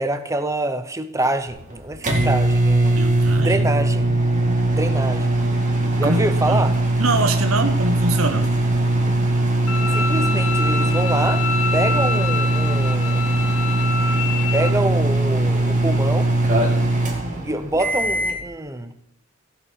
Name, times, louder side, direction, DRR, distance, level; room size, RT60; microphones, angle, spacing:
voice 1, 0.0-3.0 3.4-4.1 4.7-5.3 6.0-6.8 9.9-11.4 11.7-13.3 14.5-16.3 17.3-18.9, right 1 dB, 15° right, 0.8 m, -25 dB
sound 1, 1.5-18.4, right 2 dB, 40° right, 2.4 m, -20 dB
voice 2, 2.9-3.6 6.0-6.6 7.0-8.5, right 2 dB, 90° right, 1.3 m, -23 dB
Bowed string instrument, 9.7-14.7, left 4 dB, 80° left, 0.9 m, -26 dB
16.5 x 8.0 x 4.8 m
head